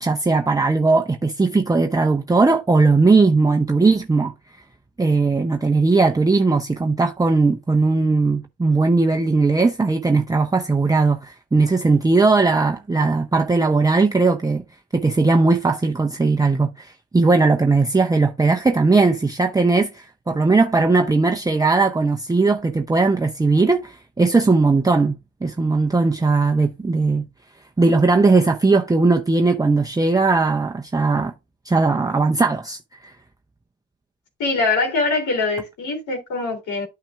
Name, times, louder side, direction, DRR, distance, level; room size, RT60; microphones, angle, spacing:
voice 1, 0.0-4.3 5.0-14.6 14.9-27.2 27.8-31.3 31.7-33.1, right 3 dB, 10° right, 0.6 m, -18 dB
voice 2, 34.4-36.9, left 3 dB, 75° left, 3.3 m, -23 dB
8.9 x 5.7 x 2.5 m
cardioid pair, 90°, 30 cm